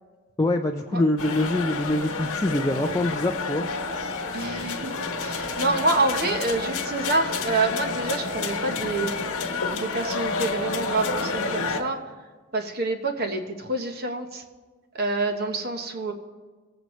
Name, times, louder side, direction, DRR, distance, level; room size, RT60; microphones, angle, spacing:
voice 1, 0.4-3.7, left 1 dB, 15° left, 1 dB, 0.3 m, -24 dB
sound 1, 1.2-11.8, left 4 dB, 80° left, 1.1 m, -29 dB
voice 2, 4.3-9.1 9.7-12.0 12.5-14.4 14.9-16.1, right 2 dB, 45° right, 5 dB, 0.9 m, -27 dB
19.0 x 7.8 x 3.1 m, 1.4 s
head